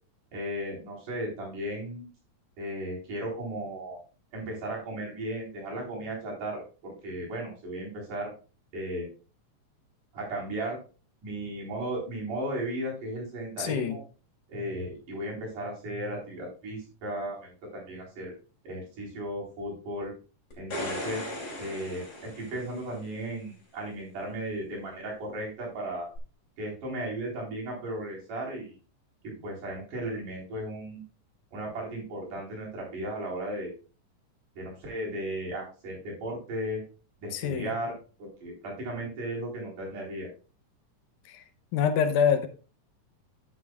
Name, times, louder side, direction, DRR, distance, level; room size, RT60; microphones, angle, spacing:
voice 1, 0.3-2.0 2.6-4.0 4.3-8.3 8.7-9.1 10.1-10.8 11.2-14.0 14.5-18.3 18.6-20.1 20.6-21.3 21.6-26.1 26.6-28.8 29.2-31.0 31.5-33.7 34.6-36.8 37.2-37.9 38.2-40.3, right 1 dB, 75° right, -3 dB, 5.6 m, -35 dB
voice 2, 13.6-14.0 37.3-37.7 41.3-41.4 41.7-42.5, left 7 dB, 80° left, 8 dB, 2.3 m, -25 dB
sound 1, 20.5-23.1 26.1-26.2, left 1 dB, 30° left, 3.3 m, -37 dB
11.0 x 10.5 x 2.3 m, 0.34 s
omnidirectional pair, 3.6 m